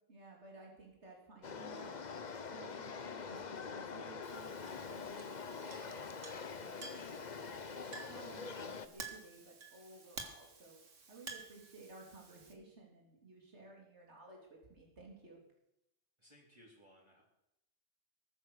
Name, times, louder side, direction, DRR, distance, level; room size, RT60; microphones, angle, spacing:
voice 1, 0.1-2.0 2.5-10.8 11.1-14.4 14.7-15.4, right 3 dB, 60° right, -1 dB, 3.8 m, -56 dB
sound 1, 1.4-8.9, left 5 dB, 40° left, 0.9 m, -45 dB
Chink clink, 4.2-12.5, right 4 dB, 75° right, 2.1 m, -52 dB
voice 2, 16.2-17.2, equal, 20° right, -5 dB, 3.9 m, -62 dB
21.0 x 9.1 x 6.6 m, 0.84 s
omnidirectional pair, 1.3 m